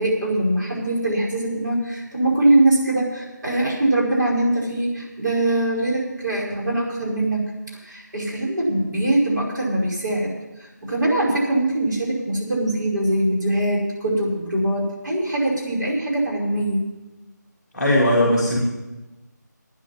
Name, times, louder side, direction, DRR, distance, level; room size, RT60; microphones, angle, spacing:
voice 1, 0.0-16.8, right 1 dB, 75° right, -4 dB, 5.2 m, -22 dB
voice 2, 17.7-18.6, left 1 dB, ahead, -11 dB, 1.8 m, -18 dB
9.7 x 8.3 x 9.4 m, 1.1 s
figure-of-eight pair, 170°, 10 cm